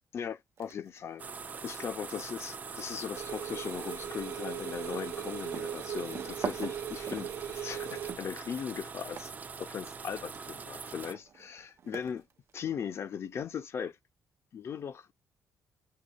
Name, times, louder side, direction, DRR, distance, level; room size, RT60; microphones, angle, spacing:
voice 1, 0.1-1.3 1.6-9.3 9.6-12.3 12.5-14.0 14.5-15.1, left 7 dB, 50° left, 0.6 m, -38 dB
sound 1, 0.6-1.0 1.4-12.6, right 7 dB, 45° right, 0.9 m, -45 dB
sound 2, 1.2-11.1, right 5 dB, 25° right, 0.3 m, -43 dB
sound 3, 3.1-8.1, right 10 dB, 70° right, 1.1 m, -40 dB
6.6 x 3.0 x 2.2 m
cardioid pair, 140°, 6 cm